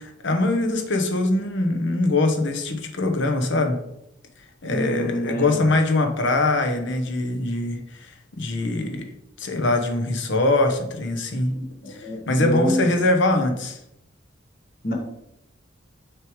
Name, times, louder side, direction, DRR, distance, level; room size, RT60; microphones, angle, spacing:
voice 1, 0.0-3.8 4.6-9.1 9.4-11.6 11.9-13.8, left 2 dB, 65° left, 4 dB, 0.9 m, -23 dB
voice 2, 4.6-5.7 11.6-12.9 14.8-14.9, equal, 50° left, 0 dB, 1.4 m, -27 dB
6.5 x 5.0 x 3.1 m, 0.81 s
head